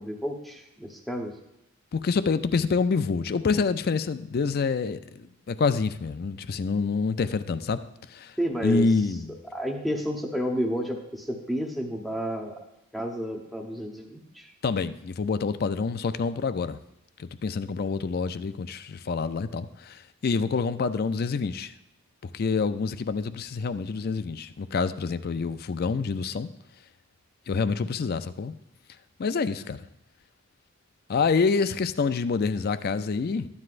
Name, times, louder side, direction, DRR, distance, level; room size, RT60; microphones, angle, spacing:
voice 1, 0.0-1.3 8.4-8.9 9.5-12.6 12.9-14.5, equal, ahead, 1 dB, 0.9 m, -31 dB
voice 2, 1.9-7.8 8.1-8.4 8.6-9.4 14.6-16.8 17.2-21.7 22.3-26.5 27.5-28.5 29.2-29.8 31.1-33.5, left 4 dB, 45° left, 12 dB, 0.4 m, -27 dB
13.0 x 9.6 x 2.5 m, 0.84 s
head